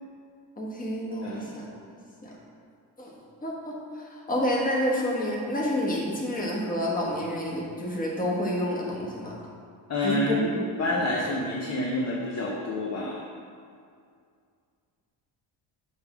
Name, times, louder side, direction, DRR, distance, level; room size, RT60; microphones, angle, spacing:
voice 1, 0.6-1.7 2.2-2.3 3.0-3.1 3.4-9.3 10.0-11.1, equal, 20° left, -3 dB, 1.2 m, -29 dB
voice 2, 1.2-1.6 9.9-10.5 10.8-13.2, left 1 dB, 35° left, -2 dB, 0.7 m, -28 dB
6.4 x 3.5 x 5.9 m, 2.3 s
cardioid pair, 135°, 44 cm